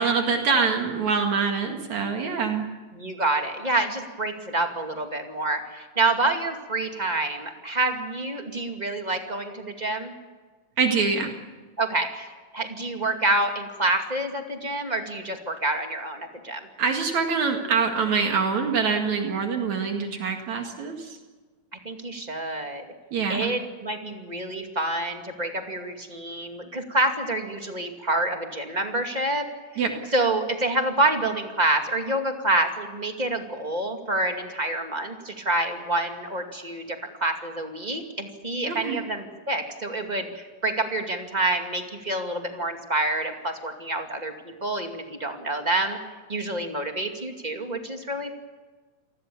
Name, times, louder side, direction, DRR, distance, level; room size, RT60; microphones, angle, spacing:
voice 1, 0.0-2.6 10.8-11.3 16.8-21.2 23.1-23.5 29.8-29.9 38.7-39.0, right 5 dB, 65° right, 4 dB, 3.2 m, -25 dB
voice 2, 2.9-10.1 11.8-16.7 21.8-22.8 23.3-29.4 29.7-29.8 30.1-44.3 44.6-46.0 46.3-48.3, right 2 dB, 15° right, 4 dB, 2.0 m, -27 dB
28.5 x 20.0 x 7.1 m, 1.4 s
omnidirectional pair, 3.6 m